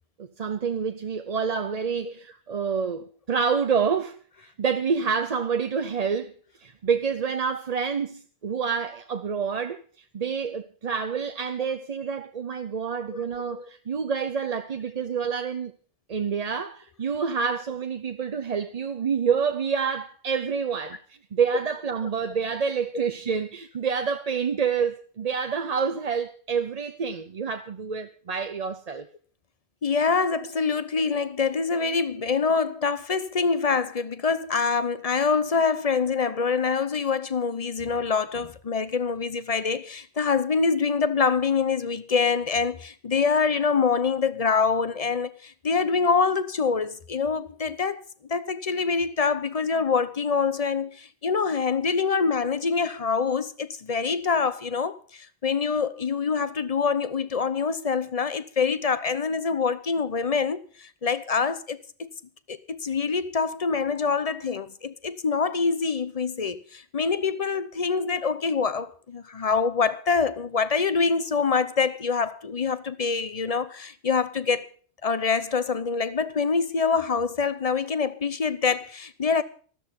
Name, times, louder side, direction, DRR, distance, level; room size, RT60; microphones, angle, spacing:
voice 1, 0.2-6.3 6.6-9.8 10.1-15.7 16.1-21.0 21.3-29.1, right 6 dB, 40° right, 0.7 m, -28 dB
voice 2, 29.8-48.0 48.3-62.1 62.5-74.7 75.0-79.4, left 5 dB, 35° left, 0.8 m, -25 dB
13.5 x 13.0 x 5.3 m
omnidirectional pair, 1.1 m